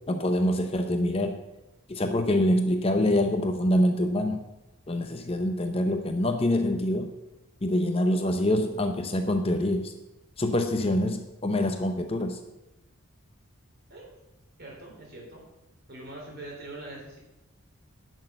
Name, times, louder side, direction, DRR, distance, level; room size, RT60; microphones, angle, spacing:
voice 1, 0.1-1.4 1.9-4.4 4.9-7.1 7.6-9.9 10.4-12.4, left 1 dB, 25° left, 6 dB, 0.7 m, -25 dB
voice 2, 14.6-15.4 15.9-17.2, right 2 dB, 45° right, -2 dB, 3.8 m, -42 dB
11.0 x 6.4 x 7.8 m, 0.99 s
head